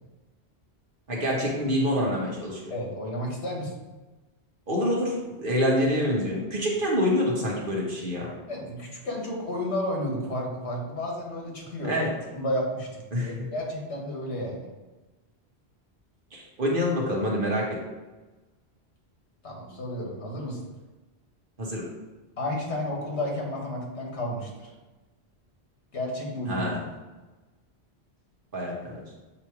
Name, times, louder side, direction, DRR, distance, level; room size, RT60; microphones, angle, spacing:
voice 1, 1.1-2.7 4.7-8.3 11.8-12.1 13.1-13.4 16.3-17.7 21.6-21.9 26.5-26.8 28.5-29.0, equal, 55° right, -2 dB, 1.5 m, -26 dB
voice 2, 2.7-3.7 8.5-11.9 12.3-12.9 13.1-14.7 19.4-20.6 22.4-24.7 25.9-26.7, left 1 dB, 90° left, -1 dB, 1.8 m, -32 dB
7.6 x 3.0 x 4.8 m, 1.2 s
omnidirectional pair, 1.1 m